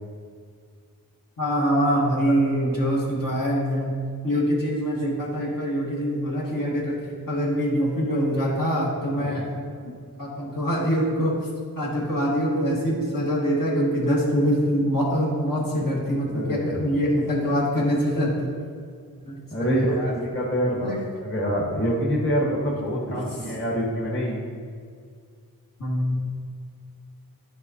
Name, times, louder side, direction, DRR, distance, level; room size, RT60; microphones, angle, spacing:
voice 1, 1.4-3.9 4.2-6.9 7.3-9.9 10.2-11.3 11.7-18.5 19.2-20.1 20.8-21.0 23.4-23.5 25.8-26.3, equal, 60° left, -5 dB, 1.7 m, -24 dB
voice 2, 16.2-16.9 19.5-20.9 21.2-24.4, equal, 35° left, -5 dB, 1.5 m, -26 dB
10.5 x 4.6 x 2.8 m, 2.1 s
wide cardioid pair, 70°, 37 cm